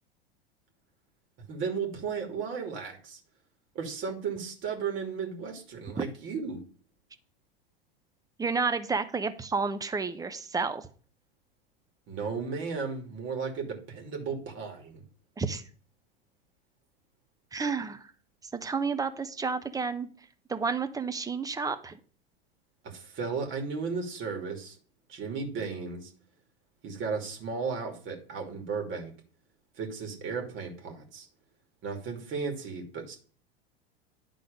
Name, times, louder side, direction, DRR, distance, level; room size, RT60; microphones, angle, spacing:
voice 1, 1.5-3.2 3.7-6.6 12.1-15.0 22.8-24.8 25.1-26.1 26.8-29.1 29.7-31.3 31.8-33.2, right 5 dB, 40° right, 2 dB, 2.4 m, -35 dB
voice 2, 8.4-10.9 15.4-15.6 17.5-18.1 18.5-20.1 20.5-21.9, right 4 dB, 10° right, 11 dB, 0.8 m, -30 dB
10.5 x 3.8 x 5.2 m, 0.42 s
hypercardioid pair, 95°, 30 cm